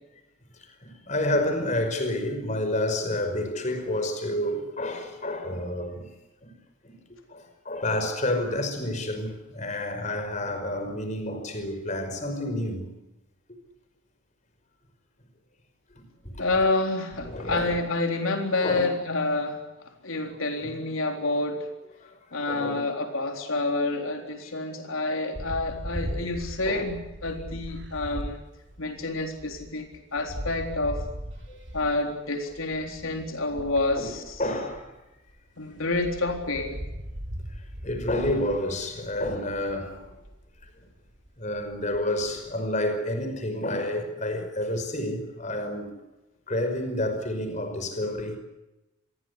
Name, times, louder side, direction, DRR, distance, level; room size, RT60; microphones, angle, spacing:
voice 1, 0.6-6.1 6.4-6.6 6.8-7.0 7.3-12.9 15.9-16.4 17.2-17.8 18.6-18.9 20.6-20.7 22.0-22.8 26.7-26.8 31.5-31.6 33.5-33.6 34.0-34.1 34.4-35.0 37.8-40.2 40.6-40.9 41.4-45.9 46.5-48.4, left 1 dB, 35° left, 5.5 m, -29 dB
voice 2, 16.4-19.6 20.0-21.7 22.3-28.4 28.8-29.9 30.1-31.0 31.7-34.4 35.6-36.8, left 2 dB, 85° left, 4.0 m, -28 dB
sound 1, 25.3-35.4 35.7-42.5, equal, 60° right, 3.5 m, -39 dB
27.0 x 22.5 x 8.3 m
head